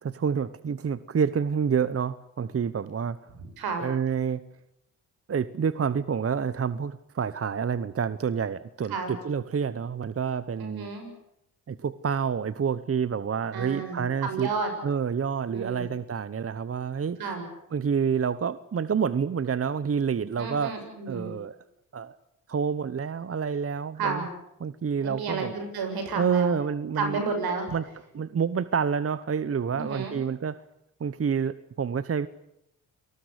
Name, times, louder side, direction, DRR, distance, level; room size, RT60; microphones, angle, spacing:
voice 1, 0.0-3.2 3.8-4.4 5.3-10.9 11.7-14.5 14.8-17.2 17.7-20.8 21.1-21.6 21.9-22.2 22.5-24.3 24.6-25.5 26.1-27.2 27.7-27.8 28.1-30.6 31.0-32.3, right 6 dB, 40° right, 16 dB, 1.0 m, -28 dB
voice 2, 10.6-11.1 13.5-14.7 15.5-15.8 17.2-17.4 20.4-21.3 24.0-24.3 25.0-26.6 27.0-27.7 29.7-30.2, right 4 dB, 80° right, 6 dB, 6.9 m, -31 dB
28.5 x 19.5 x 8.2 m, 0.82 s
supercardioid pair, 55°, 36 cm